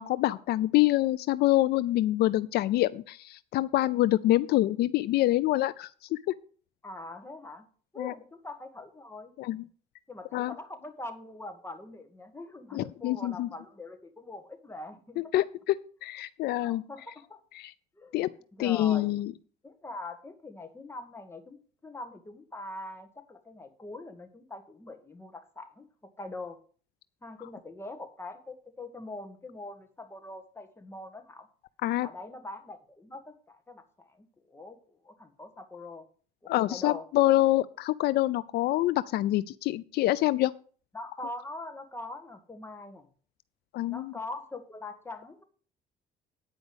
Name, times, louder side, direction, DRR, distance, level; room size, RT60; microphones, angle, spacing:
voice 1, 0.0-6.3 8.0-8.1 9.4-9.6 10.3-10.5 12.7-13.5 15.3-15.8 16.0-16.8 17.6-17.7 18.1-18.3 18.6-19.3 31.8-32.1 36.5-40.5 43.7-44.1, left 15 dB, 70° left, 16 dB, 0.4 m, -26 dB
voice 2, 6.8-7.6 7.9-9.3 10.1-15.2 16.6-17.4 18.0-18.1 18.5-19.1 19.6-25.9 26.2-26.6 27.2-31.5 32.0-36.0 36.4-37.0 40.9-43.1 43.9-45.4, left 2 dB, 15° left, 6 dB, 1.8 m, -43 dB
9.5 x 5.2 x 7.9 m, 0.43 s
cardioid pair, 110°, 17 cm